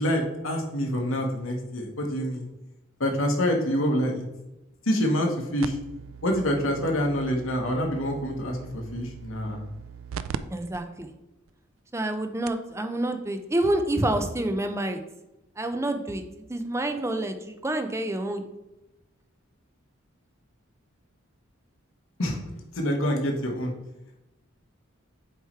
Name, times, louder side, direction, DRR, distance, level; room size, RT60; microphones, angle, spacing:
voice 1, 0.0-2.5 3.0-4.3 4.8-5.8 6.2-9.6 22.2-23.7, equal, 80° left, 2 dB, 1.3 m, -26 dB
sound 1, 5.6-10.4 10.7-10.8 11.5-11.6 12.1-12.2 12.5-12.7 13.9-14.0, right 7 dB, 80° right, 0.3 m, -40 dB
voice 2, 10.5-11.1 11.9-15.0 15.6-18.4, right 1 dB, 15° right, 6 dB, 0.5 m, -28 dB
8.1 x 3.1 x 4.5 m, 0.95 s
head